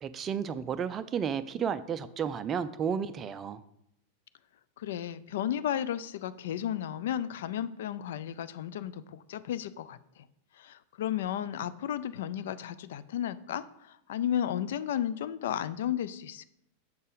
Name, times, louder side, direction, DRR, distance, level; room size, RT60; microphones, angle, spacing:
voice 1, 0.0-3.6, right 7 dB, 25° right, 12 dB, 0.3 m, -32 dB
voice 2, 4.8-10.0 10.6-16.4, left 10 dB, 55° left, 15 dB, 0.3 m, -33 dB
6.7 x 4.3 x 5.0 m, 0.77 s
figure-of-eight pair, 90°, 0 cm